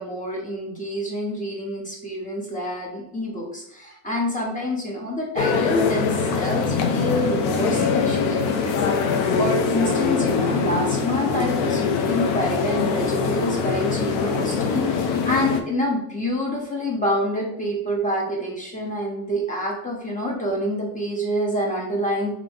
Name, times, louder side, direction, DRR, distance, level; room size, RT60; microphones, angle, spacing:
voice 1, 0.0-22.3, equal, 15° left, -2 dB, 1.3 m, -27 dB
sound 1, 5.4-15.6, left 5 dB, 85° left, 0.7 m, -23 dB
3.8 x 3.0 x 3.6 m, 0.75 s
cardioid pair, 110°, 45 cm